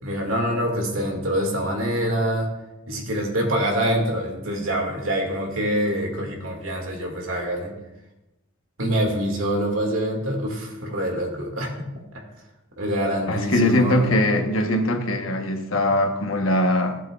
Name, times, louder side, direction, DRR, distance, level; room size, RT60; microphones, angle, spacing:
voice 1, 0.0-2.5 2.9-7.7 8.8-11.9 12.8-14.1, equal, 90° right, 1 dB, 2.2 m, -25 dB
voice 2, 13.3-17.0, left 1 dB, 80° left, 4 dB, 1.2 m, -21 dB
15.5 x 7.5 x 2.4 m, 0.97 s
head